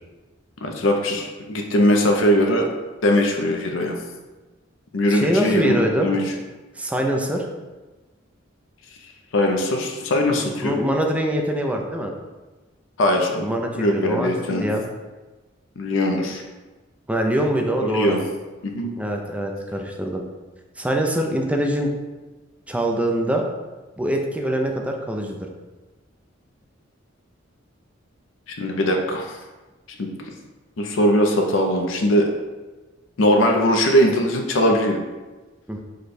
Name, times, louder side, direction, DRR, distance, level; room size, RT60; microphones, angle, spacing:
voice 1, 0.6-2.7 3.0-3.9 4.9-6.2 9.3-10.8 13.0-13.5 13.8-14.7 15.8-16.4 17.9-18.2 18.6-18.9 28.6-29.4 30.0-30.1 30.8-32.3 33.2-35.0, equal, 80° left, 3 dB, 0.5 m, -20 dB
voice 2, 5.1-6.1 6.8-7.5 10.6-12.1 13.4-14.8 17.1-18.2 19.0-20.2 20.8-21.9 22.7-23.4 24.0-25.4 35.7-35.8, right 1 dB, 5° right, 2 dB, 0.4 m, -23 dB
4.9 x 2.2 x 4.1 m, 1.2 s
head